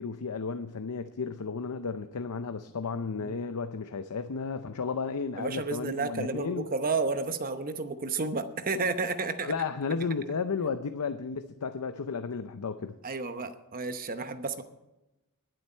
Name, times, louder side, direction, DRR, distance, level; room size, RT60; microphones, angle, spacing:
voice 1, 0.0-6.7 9.4-13.0, left 5 dB, 80° left, 10 dB, 0.6 m, -33 dB
voice 2, 5.4-9.5 13.0-14.6, right 3 dB, 40° right, 9 dB, 0.9 m, -31 dB
20.5 x 7.8 x 4.4 m, 0.96 s
head